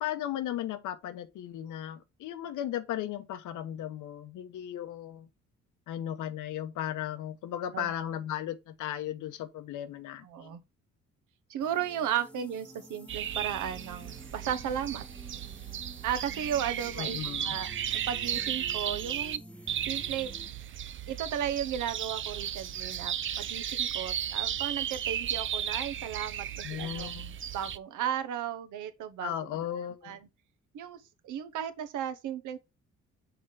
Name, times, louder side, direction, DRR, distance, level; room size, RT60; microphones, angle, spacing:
voice 1, 0.0-5.3 5.9-10.6 17.0-17.6 26.6-27.4 29.2-30.2, left 11 dB, 85° left, 1.0 m, -36 dB
voice 2, 10.2-10.6 11.5-15.0 16.0-17.2 17.4-19.4 19.9-20.3 21.1-27.1 27.5-29.3 30.0-30.2 30.7-32.6, right 9 dB, 80° right, 1.0 m, -35 dB
sound 1, 11.6-20.5, equal, 5° left, 0.9 m, -50 dB
sound 2, 13.1-19.4 19.7-27.8, right 10 dB, 40° right, 0.5 m, -35 dB
6.2 x 3.5 x 4.8 m
cardioid pair, 90°, 30 cm